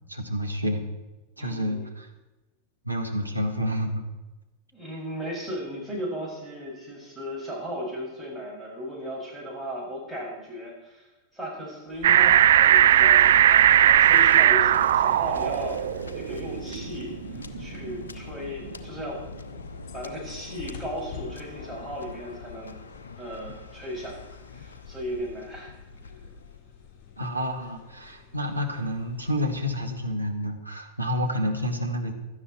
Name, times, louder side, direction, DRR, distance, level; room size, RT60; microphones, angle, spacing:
voice 1, 0.1-0.8 1.4-2.1 2.8-4.0 27.2-32.1, equal, 85° right, 3 dB, 1.8 m, -29 dB
voice 2, 1.4-1.9 4.7-11.1 11.3-15.8 16.1-19.2 19.9-22.8 23.2-24.2 24.5-25.7, equal, 5° right, -3 dB, 6.0 m, -36 dB
sound 1, 11.9-30.3, left 7 dB, 40° left, 2.9 m, -46 dB
sound 2, 12.0-18.2 18.7-18.8, right 11 dB, 60° right, 0.3 m, -18 dB
Waves surf, 12.6-26.6, left 4 dB, 70° left, 0.9 m, -44 dB
16.5 x 12.5 x 4.3 m, 1.1 s
figure-of-eight pair, 90°, 0 cm